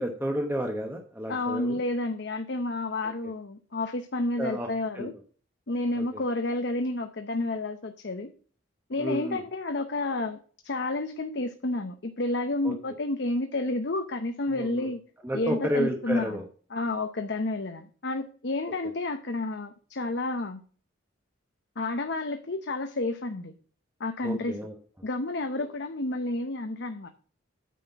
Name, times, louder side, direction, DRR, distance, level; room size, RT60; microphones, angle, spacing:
voice 1, 0.0-1.8 4.4-4.7 4.9-5.1 5.9-6.2 9.0-9.4 12.6-12.7 14.5-14.9 15.2-16.4 24.2-24.7, equal, 10° right, 2 dB, 0.9 m, -31 dB
voice 2, 1.3-5.1 5.7-8.3 8.9-10.4 10.6-15.0 15.3-16.4 16.7-20.6 21.8-23.5 24.0-24.6 25.0-27.1, left 2 dB, 55° left, 7 dB, 0.7 m, -30 dB
9.2 x 4.3 x 6.7 m, 0.41 s
head